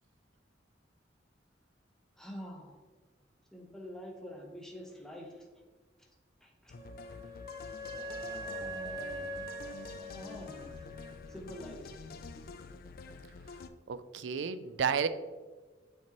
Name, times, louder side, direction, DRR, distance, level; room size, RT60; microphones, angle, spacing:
voice 1, 2.2-2.8 3.5-5.5 6.0-6.1 6.4-6.7 7.9-10.8 11.3-12.0 13.0-13.3, equal, 5° left, -1 dB, 1.0 m, -47 dB
sound 1, 6.7-13.7, left 4 dB, 55° left, 0.4 m, -47 dB
Wind instrument woodwind instrument, 6.8-11.4, right 1 dB, 20° right, 0.5 m, -43 dB
voice 2, 13.9-15.1, right 6 dB, 80° right, 13 dB, 0.4 m, -31 dB
8.5 x 4.5 x 3.0 m, 1.3 s
head